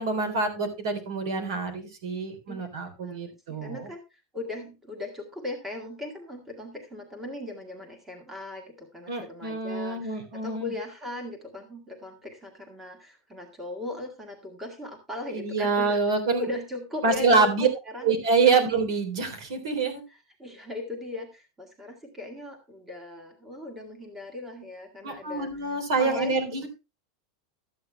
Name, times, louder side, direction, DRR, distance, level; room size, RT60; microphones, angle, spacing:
voice 1, 0.0-3.9 9.1-10.7 15.3-16.5 17.0-17.7 18.0-20.0 25.0-26.7, right 4 dB, 70° right, 8 dB, 3.6 m, -26 dB
voice 2, 3.0-16.0 16.4-18.1 20.1-25.7 26.0-26.7, left 2 dB, 10° right, 4 dB, 1.5 m, -38 dB
13.0 x 8.8 x 3.3 m, 0.27 s
supercardioid pair, 180°, 3 cm